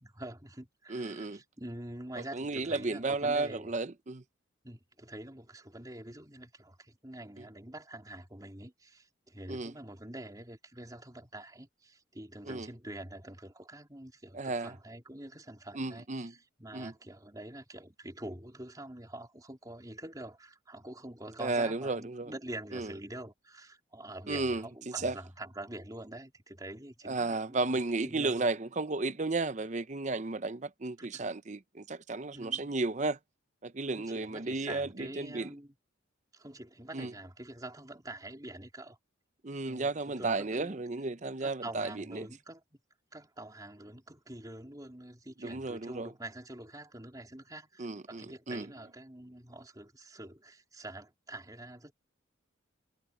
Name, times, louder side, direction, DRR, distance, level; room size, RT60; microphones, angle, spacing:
voice 1, 0.0-3.7 4.6-16.3 16.6-28.5 31.0-31.3 32.3-32.7 33.9-35.7 36.3-39.0 39.6-40.8 41.4-42.6 43.1-51.9, right 1 dB, 20° right, 3.7 m, -46 dB
voice 2, 0.9-1.4 2.2-4.2 7.4-7.5 9.5-9.7 12.4-12.7 14.3-14.8 15.7-16.3 16.7-16.9 21.4-22.3 22.7-22.9 24.3-25.2 27.0-33.2 33.6-35.5 36.9-37.1 39.4-42.3 45.4-46.1 47.8-48.7, right 3 dB, 40° right, 0.7 m, -33 dB
head